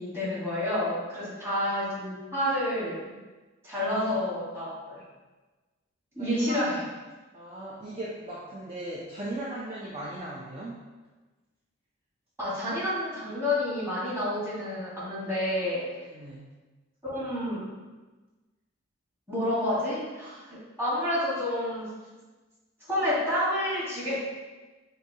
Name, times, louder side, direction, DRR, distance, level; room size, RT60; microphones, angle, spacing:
voice 1, 0.0-3.1 3.6-5.0 6.1-6.8 12.4-15.8 17.0-17.7 19.3-21.9 22.9-24.2, left 1 dB, 10° right, -9 dB, 1.4 m, -29 dB
voice 2, 6.2-6.6 7.3-10.8 16.1-16.5, right 1 dB, 30° right, -5 dB, 0.4 m, -38 dB
5.4 x 2.6 x 2.7 m, 1.2 s
head